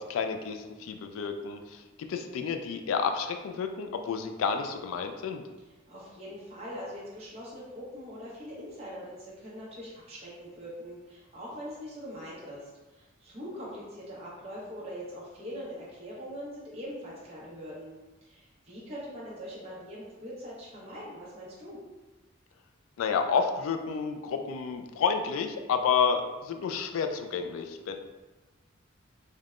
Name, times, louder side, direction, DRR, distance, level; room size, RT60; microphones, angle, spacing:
voice 1, 0.0-1.8 2.1-5.4 23.0-28.0, left 6 dB, 80° left, 7 dB, 0.3 m, -30 dB
voice 2, 5.9-12.6 12.9-17.9 18.2-21.8, equal, 30° right, -7 dB, 0.9 m, -42 dB
3.3 x 2.1 x 2.4 m, 1.1 s
head